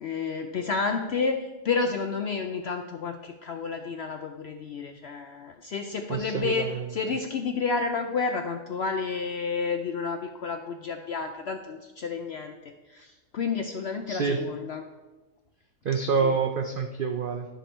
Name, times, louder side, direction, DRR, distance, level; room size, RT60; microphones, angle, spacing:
voice 1, 0.0-14.8 16.2-16.3, left 4 dB, 75° left, 5 dB, 0.6 m, -30 dB
voice 2, 6.1-6.8 14.1-14.4 15.8-17.5, right 5 dB, 85° right, 5 dB, 0.4 m, -27 dB
12.5 x 5.1 x 4.3 m, 1.2 s
omnidirectional pair, 1.6 m